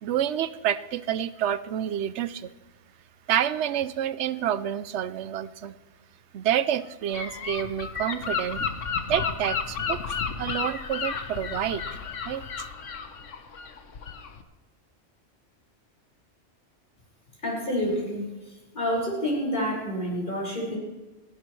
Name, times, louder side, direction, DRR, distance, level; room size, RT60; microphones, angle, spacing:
voice 1, 0.0-2.5 3.3-5.8 6.3-8.6 9.1-11.8 12.3-12.7, right 10 dB, 70° right, 15 dB, 0.9 m, -28 dB
Gull seagull / Wind, 7.1-14.4, left 6 dB, 85° left, 1.4 m, -32 dB
voice 2, 17.4-18.3 18.7-20.8, equal, 40° left, -3 dB, 5.6 m, -28 dB
29.0 x 11.5 x 3.2 m, 1.2 s
omnidirectional pair, 1.2 m